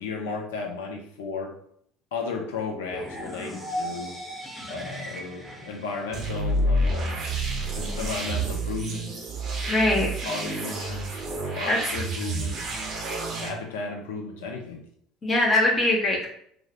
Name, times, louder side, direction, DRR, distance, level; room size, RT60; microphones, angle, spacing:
voice 1, 0.0-1.6 2.1-4.2 4.7-7.2 7.7-9.4 10.2-12.9 13.4-14.8, left 4 dB, 80° left, 1 dB, 0.4 m, -34 dB
sound 1, 2.9-6.9, equal, ahead, 0.7 m, -37 dB
sound 2, 6.1-13.5, right 1 dB, 50° right, 0.6 m, -29 dB
voice 2, 9.7-10.1 11.7-11.8 15.2-16.3, left 2 dB, 35° left, -1 dB, 0.6 m, -22 dB
2.4 x 2.0 x 2.7 m, 0.67 s
hypercardioid pair, 65°, 0 cm